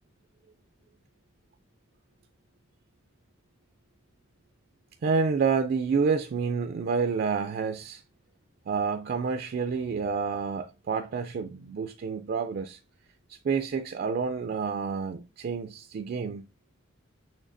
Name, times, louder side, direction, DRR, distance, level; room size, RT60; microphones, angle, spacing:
voice 1, 5.0-8.0 8.7-12.8 13.3-16.5, right 5 dB, 50° right, 0.3 m, -29 dB
6.4 x 3.2 x 2.6 m
head